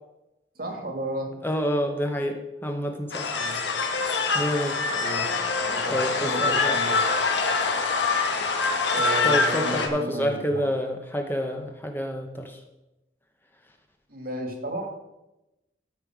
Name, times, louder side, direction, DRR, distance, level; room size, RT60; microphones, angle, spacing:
voice 1, 0.6-1.4 3.3-3.6 4.9-5.4 5.7-7.1 8.9-10.7 14.1-14.9, right 1 dB, 55° right, 3 dB, 2.0 m, -33 dB
voice 2, 1.4-3.3 3.6-3.8 4.3-4.8 5.7-6.8 9.2-12.6, equal, 10° left, 4 dB, 0.8 m, -28 dB
sound 1, 3.1-9.9, left 4 dB, 80° left, 1.2 m, -25 dB
13.0 x 5.3 x 4.8 m, 0.95 s
head